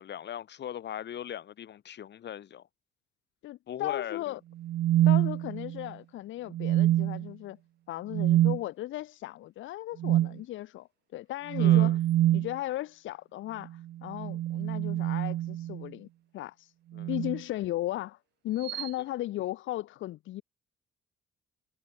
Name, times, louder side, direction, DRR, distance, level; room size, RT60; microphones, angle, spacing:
voice 1, 0.0-2.7 3.7-4.4 11.6-12.0 16.9-17.1, left 10 dB, 60° left, 1.6 m, -39 dB
voice 2, 3.4-4.4 5.0-7.6 7.9-12.0 12.3-16.1 16.3-16.7 17.1-18.2 18.4-20.4, left 15 dB, 75° left, 0.7 m, -36 dB
sound 1, 4.6-5.9 6.5-7.3 8.1-8.6 10.0-10.4 11.5-12.5 14.0-15.9 16.9-17.4 18.6-18.9, right 13 dB, 60° right, 0.4 m, -26 dB
cardioid pair, 90°, 20 cm